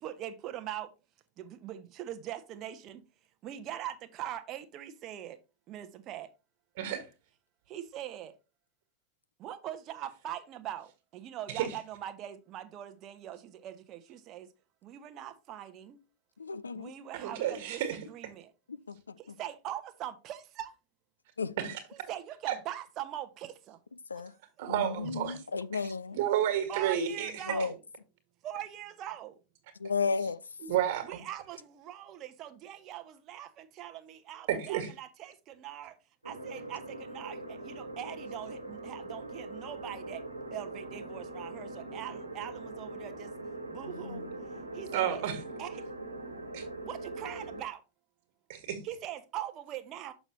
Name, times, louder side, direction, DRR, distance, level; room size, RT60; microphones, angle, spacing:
voice 1, 0.0-0.9 1.4-3.0 3.4-5.4 5.7-6.3 7.7-8.3 9.4-14.5 14.8-16.0 16.7-18.5 19.2-20.7 21.9-23.8 24.1-24.2 26.7-27.8 28.4-29.3 31.0-36.0 36.2-40.2 40.5-43.3 43.7-44.3 44.7-45.2 45.6-45.9 46.8-47.8 48.8-50.1, right 11 dB, 35° right, 0.8 m, -42 dB
voice 2, 16.4-16.9 18.7-19.2 21.4-21.6 24.1-24.3 24.6-26.2 27.5-27.7 29.8-30.4 43.8-44.4, left 4 dB, 75° left, 0.4 m, -34 dB
voice 3, 17.1-18.0 21.6-21.8 22.5-22.6 24.6-25.4 26.1-27.3 30.6-31.2 34.5-34.9 44.9-45.4 46.5-46.6 48.5-48.8, right 10 dB, 50° right, 1.7 m, -31 dB
sound 1, 36.2-47.6, right 2 dB, 85° right, 1.1 m, -42 dB
6.4 x 6.3 x 3.1 m
figure-of-eight pair, 90°, 0 cm